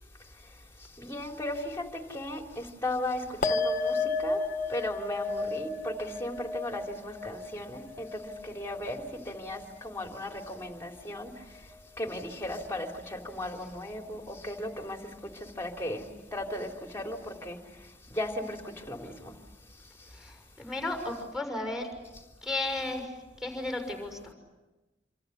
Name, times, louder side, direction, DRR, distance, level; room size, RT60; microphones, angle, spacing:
voice 1, 1.0-1.8 2.1-4.4 4.7-11.3 12.0-15.0 15.6-16.1 16.3-17.6 18.1-18.6 18.9-19.3, left 1 dB, 15° left, 3.5 m, -36 dB
sound 1, 3.4-10.1 10.4-11.0, left 3 dB, 45° left, 1.8 m, -33 dB
voice 2, 20.1-21.9 22.4-23.1 23.4-24.3, left 2 dB, ahead, 6.2 m, -34 dB
27.0 x 26.5 x 8.2 m
head